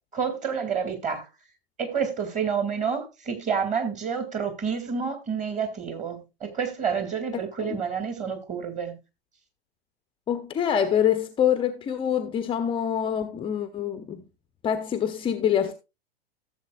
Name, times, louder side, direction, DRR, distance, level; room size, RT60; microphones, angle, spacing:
voice 1, 0.1-1.3 1.8-9.0, right 6 dB, 25° right, 2.2 m, -29 dB
voice 2, 10.3-14.2 14.6-15.7, left 9 dB, 15° left, 0.7 m, -25 dB
15.0 x 7.2 x 2.3 m
figure-of-eight pair, 100°, 31 cm